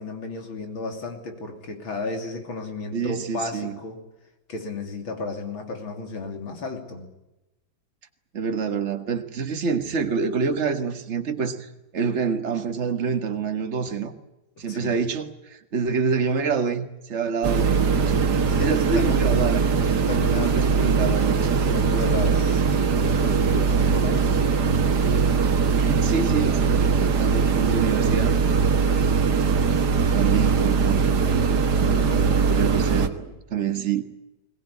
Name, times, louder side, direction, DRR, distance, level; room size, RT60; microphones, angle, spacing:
voice 1, 0.0-4.0 4.5-7.1 14.6-15.0 18.5-19.2 20.1-24.5 31.8-32.4, left 3 dB, 85° left, 4 dB, 3.8 m, -33 dB
voice 2, 2.9-3.8 8.3-14.1 14.6-18.2 18.6-19.7 20.3-21.6 25.8-28.4 30.1-31.6 32.3-34.0, right 6 dB, 35° right, 7 dB, 1.8 m, -27 dB
sound 1, 17.4-33.1, right 5 dB, 55° right, 2.0 m, -21 dB
22.0 x 19.0 x 9.9 m, 0.98 s
omnidirectional pair, 2.1 m